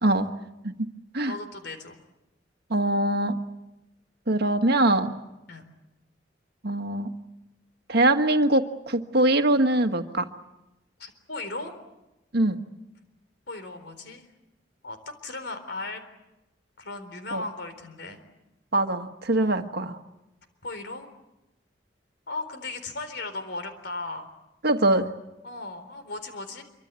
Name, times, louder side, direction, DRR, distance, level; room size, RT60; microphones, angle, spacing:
voice 1, 1.3-2.0 5.5-5.6 11.0-11.7 13.5-14.3 14.8-16.0 16.8-18.2 19.3-19.6 20.6-21.1 22.3-24.3 25.4-26.6, left 3 dB, 65° left, 9 dB, 4.0 m, -36 dB
voice 2, 2.7-3.4 4.3-5.2 6.6-7.1 7.9-10.3 12.3-12.6 17.3-17.4 18.7-20.0 24.6-25.1, right 1 dB, 60° right, 6 dB, 1.6 m, -23 dB
26.0 x 24.5 x 8.3 m, 0.95 s
head